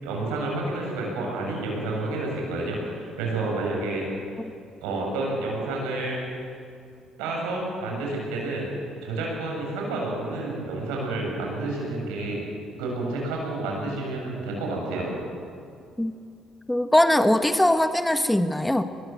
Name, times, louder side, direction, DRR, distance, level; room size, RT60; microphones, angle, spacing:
voice 1, 0.0-4.0 4.8-6.2 7.2-8.7 9.0-12.4 12.8-15.1, right 2 dB, 85° right, -1 dB, 6.8 m, -29 dB
voice 2, 16.7-18.8, left 1 dB, 10° left, 9 dB, 1.4 m, -21 dB
22.5 x 20.0 x 7.7 m, 2.5 s
supercardioid pair, 60°, 0 cm